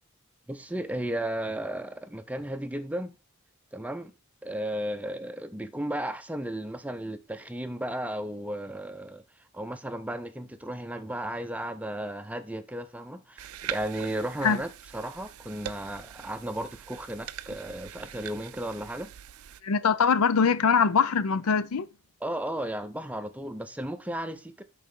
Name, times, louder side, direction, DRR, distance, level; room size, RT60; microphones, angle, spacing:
voice 1, 0.5-3.1 3.7-4.1 4.4-9.2 9.5-19.1 22.2-24.6, right 1 dB, 5° right, 0.5 m, -34 dB
sound 1, 13.4-19.6, right 10 dB, 80° right, 0.4 m, -42 dB
voice 2, 19.6-21.9, left 6 dB, 90° left, 0.5 m, -23 dB
11.0 x 4.2 x 3.8 m
head